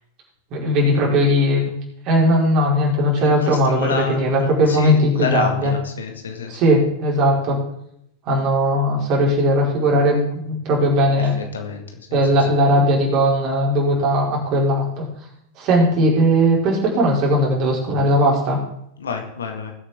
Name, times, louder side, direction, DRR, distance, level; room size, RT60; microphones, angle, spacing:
voice 1, 0.5-1.7 2.1-5.7 6.5-7.6 8.3-11.4 12.1-15.1 15.6-18.6, equal, 40° right, -2 dB, 4.4 m, -18 dB
voice 2, 3.2-6.6 11.2-12.5 15.8-15.9 19.0-19.7, left 5 dB, 70° left, 4 dB, 2.0 m, -29 dB
19.5 x 8.2 x 3.7 m, 0.73 s
figure-of-eight pair, 90°, 0 cm